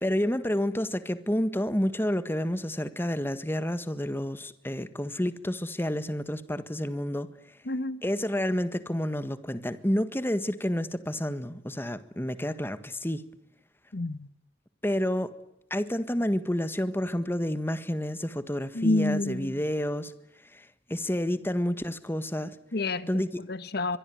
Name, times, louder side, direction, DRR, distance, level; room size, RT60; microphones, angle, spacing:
voice 1, 0.0-7.3 8.0-13.2 14.8-15.3 15.7-20.1 20.5-22.5 23.1-23.4, equal, 15° left, 1.6 m, -29 dB
voice 2, 7.7-8.0 13.9-14.3 18.7-19.5 22.7-23.2 23.5-24.0, left 2 dB, 60° left, 1.2 m, -28 dB
24.0 x 23.5 x 9.4 m
head